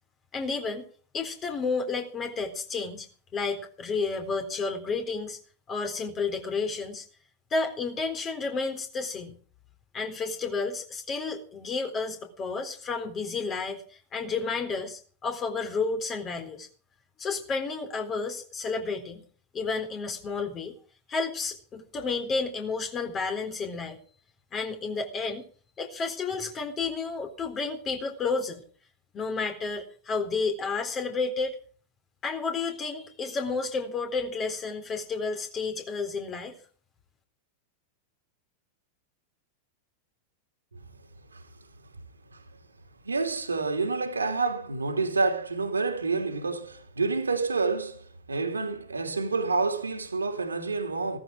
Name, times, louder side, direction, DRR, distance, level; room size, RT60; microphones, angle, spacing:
voice 1, 0.3-0.9 1.1-3.1 3.3-5.4 5.7-7.0 7.5-9.4 9.9-16.7 17.2-19.2 19.5-20.7 21.1-24.0 24.5-25.4 25.8-28.6 29.1-31.6 32.2-36.5, left 4 dB, 25° left, 3.8 m, -31 dB
voice 2, 43.0-51.2, right 4 dB, 75° right, 3.1 m, -28 dB
16.5 x 14.0 x 4.9 m
figure-of-eight pair, 90°, 0 cm